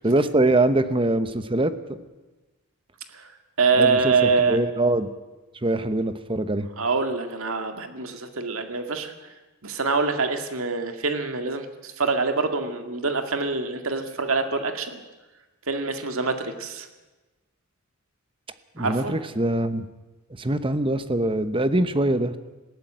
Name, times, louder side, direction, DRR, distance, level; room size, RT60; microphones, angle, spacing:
voice 1, 0.0-2.0 3.8-5.1 5.6-6.7 18.8-19.9 20.3-22.4, right 2 dB, 25° right, 11 dB, 1.0 m, -23 dB
voice 2, 3.6-4.6 6.8-9.1 9.6-15.0 15.7-16.9 18.8-19.1, right 4 dB, 65° right, 6 dB, 2.1 m, -25 dB
19.5 x 15.0 x 9.2 m, 1.2 s
head